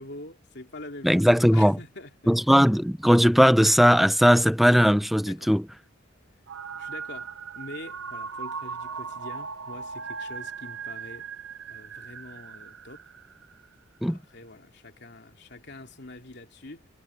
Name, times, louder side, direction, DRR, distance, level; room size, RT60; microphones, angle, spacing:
voice 1, 0.0-2.3 5.3-5.5 6.8-11.3 11.7-13.0 14.1-16.9, left 2 dB, 60° left, 2.9 m, -44 dB
voice 2, 1.0-1.8 2.3-5.6 14.0-14.2, equal, ahead, 0.6 m, -19 dB
sound 1, 6.5-13.7, right 5 dB, 80° right, 0.9 m, -38 dB
head